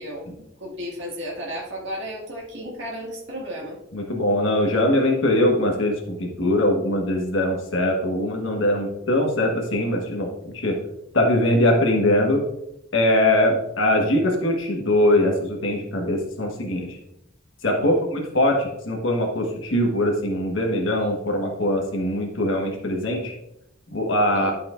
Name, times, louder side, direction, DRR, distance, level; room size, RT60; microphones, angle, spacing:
voice 1, 0.0-3.8 17.8-18.0 24.3-24.5, equal, 60° right, -3 dB, 1.9 m, -34 dB
voice 2, 3.9-10.8 11.1-12.5 12.9-17.0 17.6-23.3 23.9-24.5, left 1 dB, 65° left, 1 dB, 1.3 m, -22 dB
11.0 x 5.7 x 2.5 m, 0.83 s
head